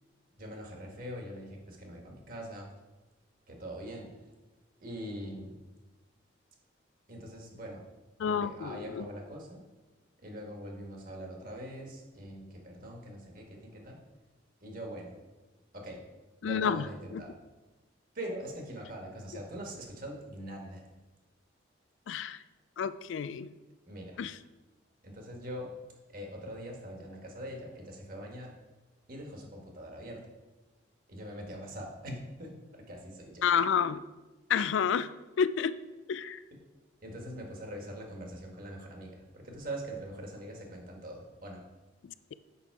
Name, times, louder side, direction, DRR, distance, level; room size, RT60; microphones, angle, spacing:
voice 1, 0.4-2.7 3.5-4.2 4.8-5.6 7.1-7.8 8.2-9.6 10.2-14.0 14.6-15.2 15.7-16.0 16.4-17.4 18.2-20.8 23.8-24.2 25.0-25.7 26.1-28.5 29.1-30.2 31.1-33.5 37.0-41.6, right 1 dB, 50° right, 0 dB, 1.6 m, -43 dB
voice 2, 8.2-9.0 16.4-16.8 17.1-17.2 22.1-22.4 22.8-23.5 24.2-24.3 33.4-34.0 34.5-35.1 35.4-35.7 36.1-36.4, left 7 dB, 80° left, 15 dB, 0.3 m, -29 dB
7.0 x 5.9 x 4.7 m, 1.2 s
head